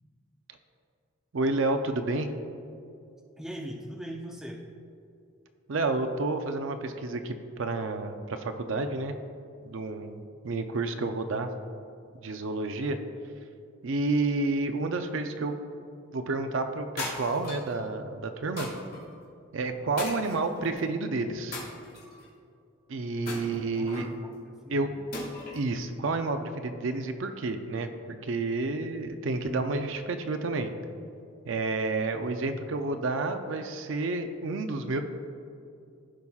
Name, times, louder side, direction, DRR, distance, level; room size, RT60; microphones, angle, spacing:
voice 1, 1.3-2.3 5.7-9.2 9.7-11.5 12.2-13.0 13.8-15.5 16.1-18.7 19.5-21.6 22.9-24.1 24.7-24.9 25.5-27.9 28.2-30.7 31.5-35.0, right 3 dB, 65° right, 7 dB, 0.5 m, -30 dB
voice 2, 3.4-4.6 23.7-25.1, equal, ahead, 0 dB, 0.5 m, -41 dB
sound 1, 17.0-17.7 18.6-19.0 20.0-20.8 21.5-22.3 23.3-24.1 25.1-25.7, left 2 dB, 45° left, 1.9 m, -38 dB
15.0 x 5.5 x 2.4 m, 2.4 s
head